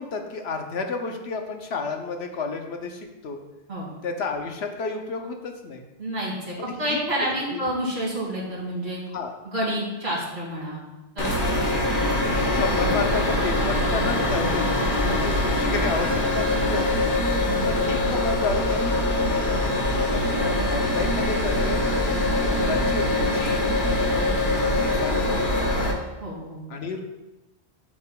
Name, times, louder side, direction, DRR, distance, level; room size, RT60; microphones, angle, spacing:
voice 1, 0.0-3.4 4.0-5.8 6.7-7.6 9.1-9.4 11.5-11.7 12.5-17.2 17.7-21.8 22.4-23.6 23.9-25.8 26.7-27.0, left 4 dB, 75° left, 4 dB, 1.0 m, -32 dB
voice 2, 6.0-9.0 9.4-10.8 11.2-11.3 12.1-12.2 17.4-17.7 22.2-22.3 26.2-26.6, right 1 dB, 70° right, -6 dB, 2.6 m, -29 dB
sound 1, 11.2-25.9, left 1 dB, 50° left, 1.1 m, -23 dB
7.5 x 7.3 x 2.2 m, 1.1 s
omnidirectional pair, 1.1 m